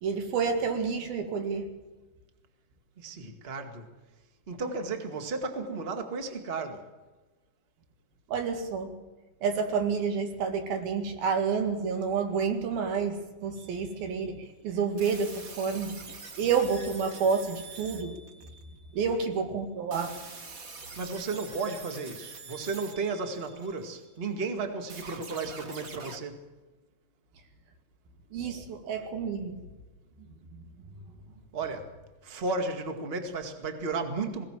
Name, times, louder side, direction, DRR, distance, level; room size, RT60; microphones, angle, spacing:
voice 1, 0.0-1.7 8.3-9.0 9.4-18.2 18.9-20.2 28.3-29.7 30.2-30.6, right 5 dB, 80° right, 5 dB, 4.1 m, -29 dB
voice 2, 3.0-3.9 4.5-6.9 20.9-26.4 31.5-31.9 32.2-34.4, right 3 dB, 25° right, 5 dB, 1.5 m, -34 dB
sound 1, 13.6-14.1 15.0-19.2 19.9-24.2 24.9-26.2, right 4 dB, 55° right, 0.9 m, -45 dB
21.5 x 18.0 x 7.5 m, 1.2 s
omnidirectional pair, 4.2 m